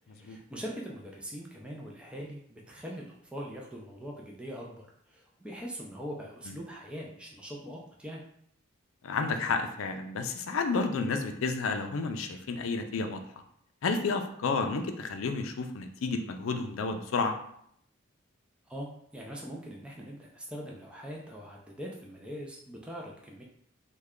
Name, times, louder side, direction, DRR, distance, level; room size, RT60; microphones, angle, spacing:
voice 1, 0.1-8.2 18.7-23.4, equal, 5° right, -2 dB, 0.4 m, -42 dB
voice 2, 9.0-13.2 13.8-17.4, left 4 dB, 70° left, 6 dB, 0.4 m, -31 dB
3.2 x 2.2 x 3.6 m, 0.70 s
head